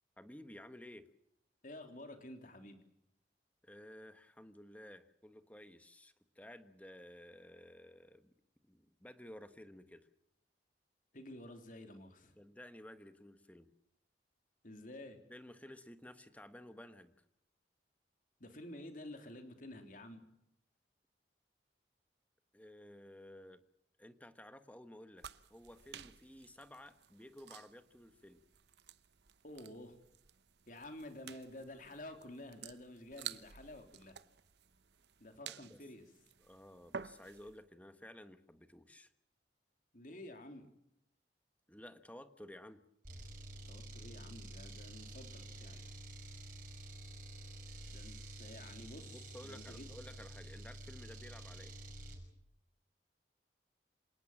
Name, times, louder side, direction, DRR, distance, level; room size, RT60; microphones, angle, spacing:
voice 1, 0.2-1.0 3.6-8.3 8.6-10.1 12.4-13.7 15.3-17.1 22.5-23.6 24.0-28.4 35.4-35.8 36.4-39.1 41.7-42.8 47.7-47.8 49.1-51.7, left 1 dB, 10° left, 10 dB, 1.4 m, -54 dB
voice 2, 1.6-2.8 11.1-12.3 14.6-15.2 18.4-20.2 29.4-30.0 30.7-34.2 35.2-36.0 39.9-40.7 43.6-45.9 47.9-49.9, left 1 dB, 45° left, 6 dB, 3.4 m, -51 dB
sound 1, 25.2-37.6, right 8 dB, 70° right, 0.9 m, -52 dB
sound 2, 43.0-52.2, right 1 dB, 45° right, 6.2 m, -49 dB
27.5 x 18.0 x 7.4 m, 0.79 s
head